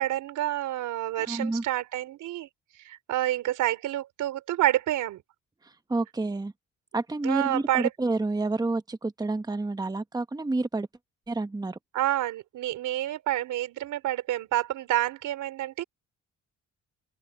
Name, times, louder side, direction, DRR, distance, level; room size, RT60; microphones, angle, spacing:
voice 1, 0.0-2.5 2.8-5.2 7.2-7.9 11.9-15.8, right 14 dB, 85° right, 4.7 m, -28 dB
voice 2, 1.2-1.6 5.6-6.5 6.9-10.9 11.3-11.8, right 2 dB, 15° right, 1.1 m, -29 dB
open air
cardioid pair, 90°, 30 cm